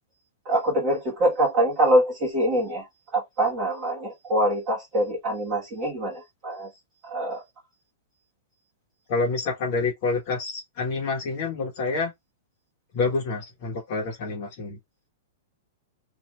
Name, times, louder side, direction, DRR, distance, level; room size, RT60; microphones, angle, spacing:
voice 1, 0.5-2.8 3.1-6.7 7.0-7.4, right 1 dB, 20° right, 1.7 m, -24 dB
voice 2, 9.1-12.1 12.9-14.8, left 3 dB, 35° left, 1.1 m, -27 dB
3.1 x 2.6 x 3.0 m
supercardioid pair, 175°, 0 cm